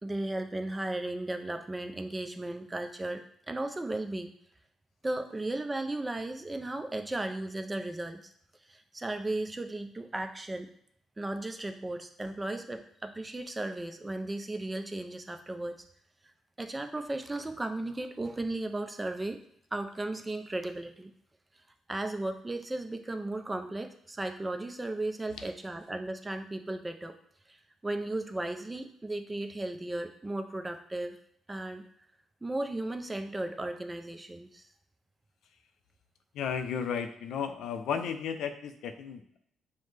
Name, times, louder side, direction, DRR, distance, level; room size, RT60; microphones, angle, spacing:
voice 1, 0.0-4.3 5.0-8.2 8.7-10.7 11.2-15.8 16.2-16.3 16.6-19.4 19.7-21.1 21.9-27.1 27.5-27.6 27.8-31.2 31.5-31.9 32.4-34.7, right 2 dB, 15° right, 6 dB, 0.4 m, -35 dB
voice 2, 36.3-39.4, left 7 dB, 80° left, 7 dB, 0.4 m, -34 dB
5.6 x 2.1 x 3.3 m, 0.68 s
cardioid pair, 90°, 0 cm